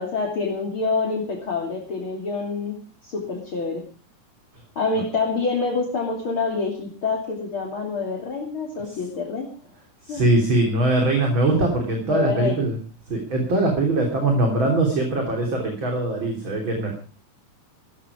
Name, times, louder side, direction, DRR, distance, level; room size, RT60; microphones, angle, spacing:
voice 1, 0.0-2.8 3.0-3.8 4.8-9.5 10.1-10.2 12.0-12.6, left 4 dB, 45° left, 0 dB, 3.5 m, -26 dB
voice 2, 10.0-12.8 13.1-17.0, right 2 dB, 40° right, 2 dB, 4.0 m, -22 dB
17.5 x 14.5 x 5.0 m, 0.36 s
omnidirectional pair, 3.5 m